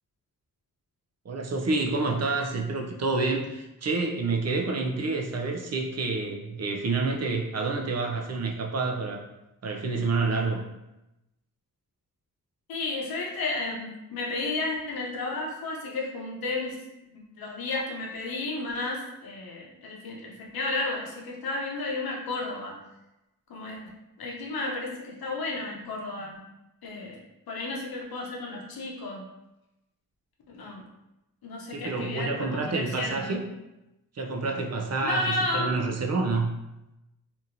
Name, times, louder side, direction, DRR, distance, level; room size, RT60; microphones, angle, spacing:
voice 1, 1.2-9.2 9.6-10.6 31.7-33.4 34.1-36.5, right 3 dB, 45° right, 2 dB, 0.5 m, -28 dB
voice 2, 12.7-16.8 17.0-17.1 17.4-22.8 23.5-23.8 24.2-26.3 26.8-27.2 27.5-29.2 30.5-30.8 31.4-33.3 35.0-35.7, left 2 dB, 80° left, -2 dB, 0.8 m, -32 dB
2.9 x 2.6 x 2.5 m, 0.94 s
cardioid pair, 75°, 36 cm